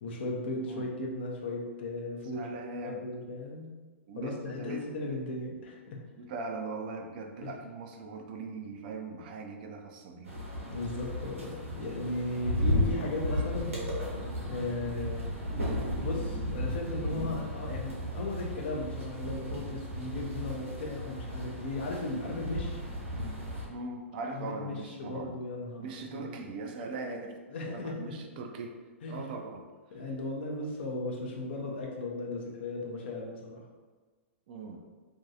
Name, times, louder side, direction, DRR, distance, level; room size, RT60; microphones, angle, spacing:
voice 1, 0.0-3.7 4.2-6.0 7.4-7.6 10.6-13.8 14.5-15.2 16.0-22.8 24.3-26.3 27.5-28.2 29.0-29.4 29.9-33.7, left 2 dB, 55° left, 0 dB, 0.5 m, -36 dB
voice 2, 2.3-3.0 4.1-4.9 6.2-10.3 17.4-17.6 23.1-25.4 25.8-27.4 27.7-28.8 29.1-29.6 29.9-30.0 34.5-34.8, right 3 dB, 45° right, 3 dB, 0.4 m, -40 dB
sound 1, 10.2-23.6, left 1 dB, 85° right, 0.9 m, -34 dB
2.5 x 2.2 x 2.7 m, 1.3 s
figure-of-eight pair, 105°, 7 cm